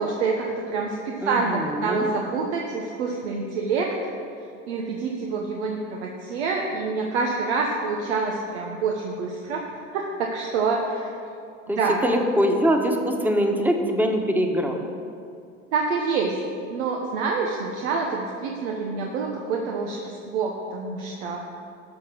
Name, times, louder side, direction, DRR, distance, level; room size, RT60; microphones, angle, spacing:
voice 1, 0.0-3.9 4.7-9.7 9.9-11.1 11.7-12.2 15.7-16.4 16.7-21.4, right 4 dB, 90° right, 0 dB, 1.2 m, -27 dB
voice 2, 1.2-2.1 11.7-14.8, equal, 5° right, 3 dB, 1.4 m, -23 dB
12.0 x 6.4 x 6.3 m, 2.4 s
supercardioid pair, 95°, 33 cm